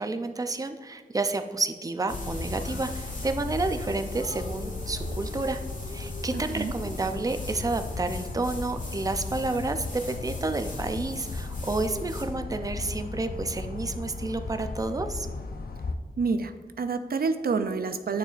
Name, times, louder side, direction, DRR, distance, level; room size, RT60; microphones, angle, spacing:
voice 1, 0.0-5.6 5.9-15.3, right 3 dB, 25° right, 7 dB, 0.5 m, -30 dB
sound 1, 2.1-15.9, left 3 dB, 75° left, 0.5 m, -35 dB
sound 2, 2.1-12.2, left 1 dB, 55° left, 1.6 m, -44 dB
voice 2, 6.3-6.7 16.2-18.2, right 4 dB, 80° right, 9 dB, 0.4 m, -28 dB
8.8 x 6.7 x 2.5 m, 1.5 s
wide cardioid pair, 80°, 16 cm